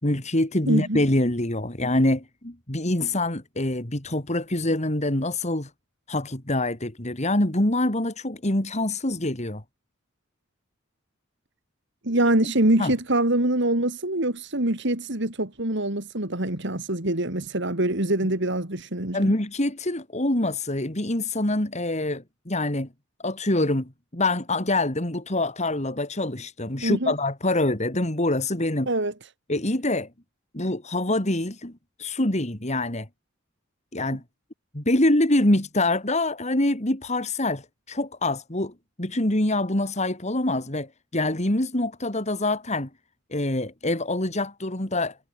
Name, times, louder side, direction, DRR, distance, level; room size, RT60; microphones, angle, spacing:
voice 1, 0.0-5.7 6.1-9.6 12.8-12.9 19.1-22.9 23.2-28.9 29.5-30.1 30.5-31.7 32.0-33.1 33.9-34.2 34.7-38.7 39.0-42.9 43.3-45.2, left 1 dB, 35° left, 3.0 m, -25 dB
voice 2, 0.7-1.0 12.0-19.3 26.8-27.1 28.9-29.1, right 1 dB, 60° right, 3.5 m, -24 dB
head